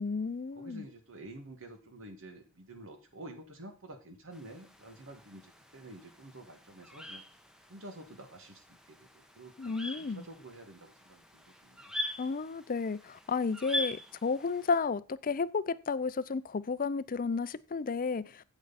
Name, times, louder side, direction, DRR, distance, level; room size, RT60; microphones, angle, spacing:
voice 1, 0.0-0.9 9.6-10.2 12.2-18.4, left 4 dB, 40° left, 0.5 m, -32 dB
voice 2, 0.6-7.2 7.7-12.1, right 1 dB, 60° right, 2.0 m, -50 dB
sound 1, 4.3-14.8, left 1 dB, 5° right, 1.0 m, -43 dB
9.4 x 8.1 x 4.1 m
head